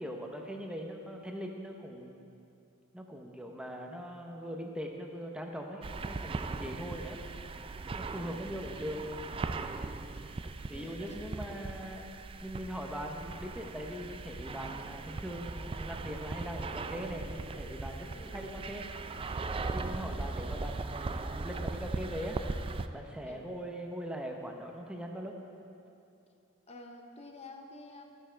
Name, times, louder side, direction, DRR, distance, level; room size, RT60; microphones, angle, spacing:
voice 1, 0.0-2.4 2.9-7.2 8.0-9.1 9.5-9.9 10.7-12.1 12.4-19.2 19.5-25.4, equal, 5° right, 1 dB, 0.8 m, -41 dB
sound 1, 5.8-22.9, right 3 dB, 25° right, 0.3 m, -39 dB
voice 2, 10.7-11.4 18.0-18.5 23.2-23.5 26.7-28.0, left 2 dB, 30° left, 3 dB, 0.7 m, -50 dB
14.0 x 9.7 x 4.5 m, 2.6 s
head